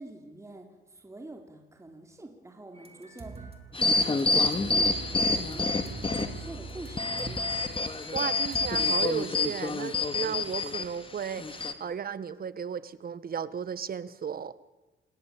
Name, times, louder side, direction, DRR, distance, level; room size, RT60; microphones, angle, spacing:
voice 1, 0.0-5.8 6.1-7.1, right 2 dB, 15° right, 3 dB, 3.8 m, -46 dB
sound 1, 2.7-3.7 4.0-8.8, right 4 dB, 30° right, 3.9 m, -43 dB
sound 2, 3.7-6.5 6.9-10.8 11.4-11.7, left 3 dB, 25° left, 2.4 m, -27 dB
voice 2, 8.1-14.5, right 7 dB, 50° right, 16 dB, 1.5 m, -34 dB
29.0 x 16.5 x 8.8 m, 1.1 s
cardioid pair, 90°, 20 cm